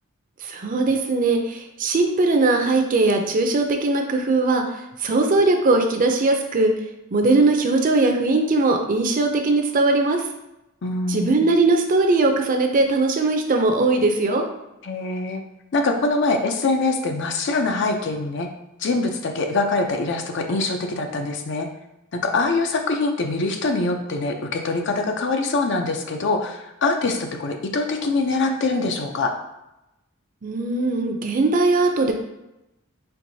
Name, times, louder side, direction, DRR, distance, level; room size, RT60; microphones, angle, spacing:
voice 1, 0.4-4.6 5.0-6.7 7.1-10.2 11.1-14.5 30.4-32.1, right 3 dB, 40° right, 4 dB, 0.5 m, -20 dB
voice 2, 10.8-11.4 14.8-15.4 15.7-18.5 18.8-21.7 22.1-29.3, left 3 dB, 60° left, 5 dB, 0.5 m, -24 dB
4.5 x 3.5 x 2.7 m, 0.91 s
head